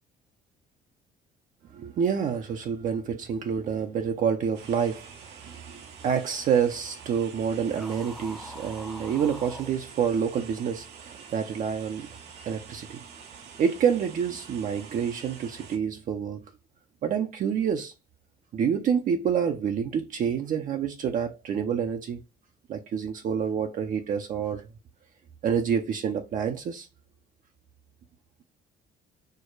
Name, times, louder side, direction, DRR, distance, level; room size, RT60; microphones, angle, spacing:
voice 1, 1.7-12.1 12.5-13.0 13.6-16.4 17.0-17.9 18.5-22.2 22.7-24.7 25.4-26.9, right 7 dB, 50° right, 0.6 m, -28 dB
sound 1, 4.5-15.8, right 6 dB, 85° right, 1.0 m, -47 dB
sound 2, 7.6-9.7, equal, ahead, 0.7 m, -43 dB
4.6 x 2.1 x 4.6 m
cardioid pair, 110°, 17 cm